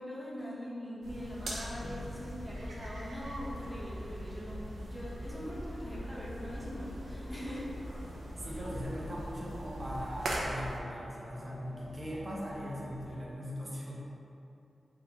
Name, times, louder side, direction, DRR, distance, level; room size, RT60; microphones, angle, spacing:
voice 1, 0.0-7.8 8.5-8.6, equal, 10° left, -7 dB, 1.0 m, -42 dB
sound 1, 1.0-10.8, equal, 85° right, 0.6 m, -41 dB
Bass guitar, 1.8-5.6, left 2 dB, 80° left, 0.4 m, -52 dB
sound 2, 5.2-13.2, left 1 dB, 45° left, 1.0 m, -53 dB
voice 2, 8.4-14.0, equal, 25° right, -6 dB, 0.9 m, -40 dB
3.7 x 3.0 x 4.0 m, 2.7 s
wide cardioid pair, 115°, 0 cm